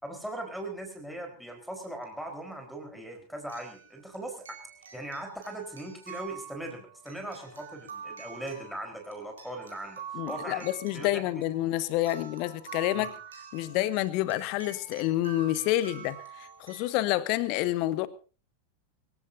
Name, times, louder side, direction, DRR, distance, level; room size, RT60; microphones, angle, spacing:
voice 1, 0.0-4.4 4.9-10.0 10.3-10.7 10.9-11.2 12.9-13.1, right 1 dB, ahead, 4.3 m, -39 dB
sound 1, 2.0-2.1 3.5-16.9, right 7 dB, 70° right, 4.8 m, -46 dB
voice 2, 10.1-13.1 13.5-18.1, left 15 dB, 45° left, 1.4 m, -28 dB
25.0 x 15.5 x 2.7 m
figure-of-eight pair, 90°, 0 cm